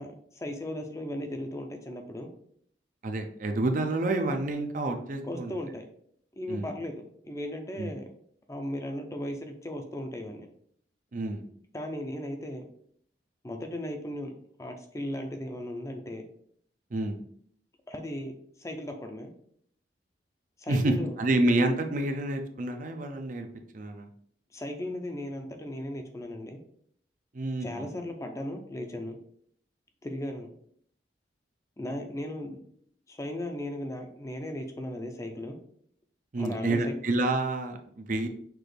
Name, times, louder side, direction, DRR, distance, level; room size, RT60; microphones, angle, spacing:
voice 1, 0.0-2.3 5.2-5.8 6.4-8.1 8.5-10.5 11.7-12.6 13.4-14.3 14.6-16.3 17.9-19.3 20.6-21.2 24.5-26.6 27.6-29.2 30.0-30.5 31.8-32.6 33.1-35.6 36.4-36.9, left 1 dB, 15° left, 4 dB, 0.5 m, -36 dB
voice 2, 3.0-5.6 6.5-6.7 7.8-7.9 11.1-11.4 16.9-17.2 20.7-23.5 23.7-24.1 27.3-27.9 36.3-38.3, right 2 dB, 45° right, 5 dB, 0.5 m, -28 dB
5.9 x 2.4 x 3.3 m, 0.64 s
head